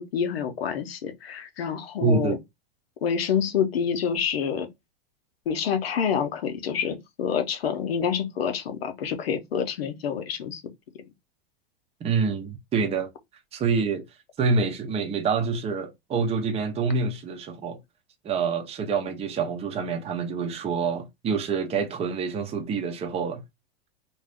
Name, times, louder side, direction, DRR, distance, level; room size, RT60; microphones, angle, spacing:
voice 1, 0.0-2.4 3.0-4.7 5.5-10.6, left 7 dB, 90° left, 0.8 m, -27 dB
voice 2, 2.0-2.4 12.0-13.1 13.5-14.0 14.4-17.8 18.2-23.4, right 5 dB, 20° right, 0.6 m, -26 dB
2.7 x 2.3 x 3.5 m
hypercardioid pair, 120°, 29 cm